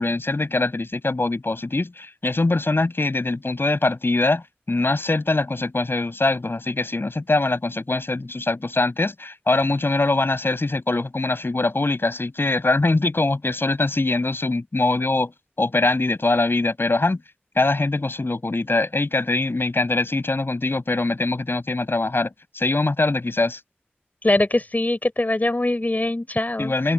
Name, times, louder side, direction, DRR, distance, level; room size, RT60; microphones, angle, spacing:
voice 1, 0.0-15.3 15.6-17.2 17.6-23.6 26.6-26.9, left 2 dB, 65° left, 7.7 m, -23 dB
voice 2, 24.2-26.7, left 2 dB, 45° left, 5.6 m, -22 dB
open air
wide cardioid pair, 40°, 4 cm